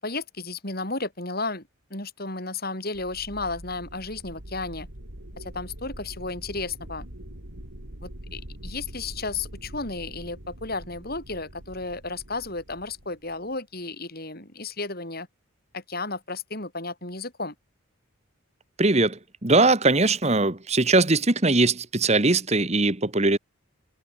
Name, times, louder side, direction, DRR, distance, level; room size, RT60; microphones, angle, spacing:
voice 1, 0.0-4.9 5.4-7.1 8.0-15.3 15.7-17.5, left 3 dB, 45° left, 6.1 m, -33 dB
sound 1, 2.9-13.6, right 1 dB, 85° right, 4.8 m, -43 dB
voice 2, 18.8-23.4, right 2 dB, 30° right, 1.5 m, -21 dB
head